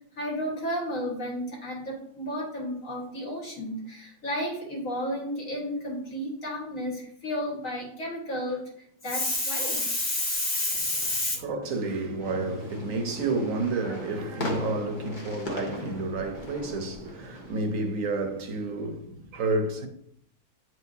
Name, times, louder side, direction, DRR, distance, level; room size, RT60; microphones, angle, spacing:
voice 1, 0.1-11.4, left 1 dB, 60° left, 1.9 m, -31 dB
voice 2, 10.7-19.9, right 2 dB, 65° right, 1.2 m, -30 dB
sound 1, 12.2-17.6, left 1 dB, 35° left, 1.0 m, -37 dB
8.7 x 4.7 x 2.7 m
omnidirectional pair, 1.6 m